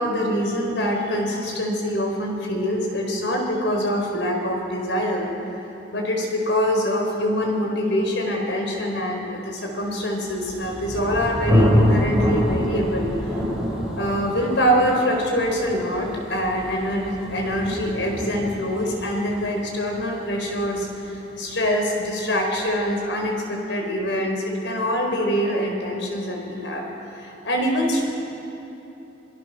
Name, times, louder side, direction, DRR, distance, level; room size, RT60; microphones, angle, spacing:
voice 1, 0.0-5.3 5.9-13.1 14.0-26.8 27.2-28.0, equal, 90° left, 1 dB, 4.6 m, -24 dB
Thunder, 10.1-21.7, equal, 5° right, 5.1 m, -26 dB
27.0 x 18.5 x 6.6 m, 3.0 s
head